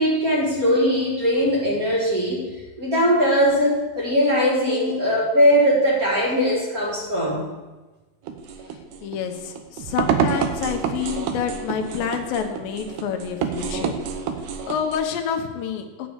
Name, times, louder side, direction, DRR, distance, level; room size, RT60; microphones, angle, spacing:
voice 1, 0.0-2.5 2.8-7.4, equal, 35° right, -4 dB, 1.5 m, -20 dB
sound 1, 8.3-15.0, right 7 dB, 75° right, 2.0 m, -28 dB
voice 2, 9.0-13.9 14.7-16.1, left 7 dB, 85° left, 5 dB, 2.7 m, -28 dB
9.2 x 5.4 x 7.9 m, 1.2 s
omnidirectional pair, 4.0 m